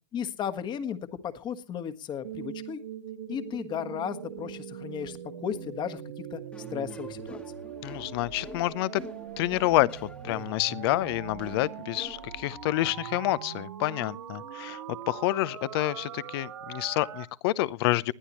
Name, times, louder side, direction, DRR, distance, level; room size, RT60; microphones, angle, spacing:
voice 1, 0.1-2.8 3.3-6.0 6.3-6.4 6.7-7.4, left 8 dB, 30° left, 1.4 m, -35 dB
sound 1, 2.2-17.3, right 10 dB, 75° right, 1.5 m, -41 dB
sound 2, 6.5-12.5, left 2 dB, 10° left, 1.3 m, -47 dB
voice 2, 7.8-9.0 9.4-18.1, left 17 dB, 55° left, 0.7 m, -28 dB
20.0 x 11.5 x 3.1 m
hypercardioid pair, 115°, 15 cm